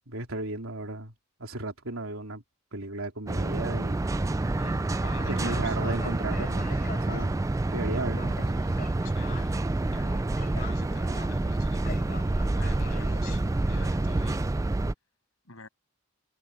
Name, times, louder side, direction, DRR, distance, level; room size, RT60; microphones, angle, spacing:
voice 1, 0.1-1.1 1.4-2.4 2.7-4.0 5.2-7.4 7.7-8.5, right 2 dB, 85° right, 3.4 m, -35 dB
sound 1, 3.3-14.9, right 2 dB, 15° right, 0.3 m, -28 dB
voice 2, 4.5-5.8 9.0-9.6 9.9-10.2 10.5-11.9 12.5-14.4 15.4-15.7, left 3 dB, 85° left, 6.8 m, -46 dB
sound 2, 5.0-9.5 10.4-11.5 11.8-13.4, left 4 dB, 45° left, 3.5 m, -44 dB
head